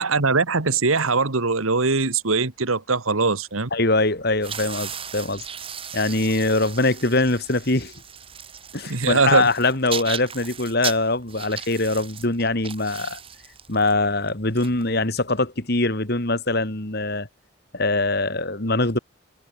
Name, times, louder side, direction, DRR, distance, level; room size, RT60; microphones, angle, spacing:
voice 1, 0.0-3.7 8.9-9.5, right 4 dB, 85° right, 1.7 m, -21 dB
voice 2, 3.7-5.4 5.9-7.9 8.7-13.2 13.7-17.3 17.7-19.0, left 2 dB, 50° left, 2.8 m, -23 dB
sound 1, 4.4-15.4, right 7 dB, 25° right, 2.3 m, -36 dB
head